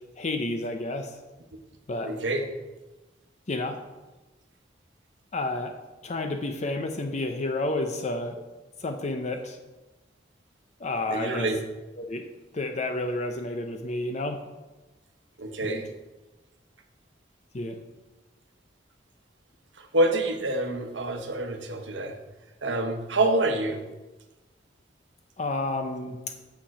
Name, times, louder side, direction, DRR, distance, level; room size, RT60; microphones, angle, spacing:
voice 1, 0.2-1.1 1.9-2.1 3.5-3.8 5.3-5.7 6.0-8.4 8.8-9.6 10.8-11.5 12.0-12.2 12.5-14.4 15.6-15.8 17.5-17.8 25.4-26.2, left 2 dB, 40° left, 6 dB, 0.6 m, -30 dB
voice 2, 2.0-2.5 11.1-11.6 15.4-15.9 19.8-22.2 22.6-23.8, right 2 dB, 85° right, 5 dB, 1.1 m, -27 dB
8.8 x 5.9 x 4.9 m, 1.1 s
head